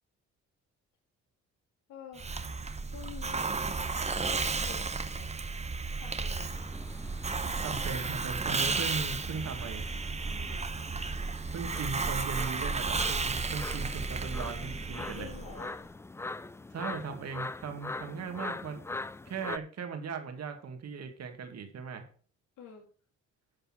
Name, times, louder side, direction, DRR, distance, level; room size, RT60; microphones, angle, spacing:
voice 1, 1.9-2.4 2.8-5.4 6.0-6.6 10.2-10.7 14.9-15.7 22.6-22.9, left 7 dB, 85° left, 1 dB, 2.1 m, -49 dB
Hiss, 2.2-15.7, right 4 dB, 20° right, 0.9 m, -33 dB
sound 1, 6.5-19.6, left 3 dB, 10° left, 0.3 m, -43 dB
voice 2, 7.6-9.9 11.5-15.3 16.7-18.8 19.3-22.1, right 5 dB, 60° right, 6 dB, 2.2 m, -38 dB
10.5 x 5.6 x 6.0 m, 0.43 s
cardioid pair, 90°, 30 cm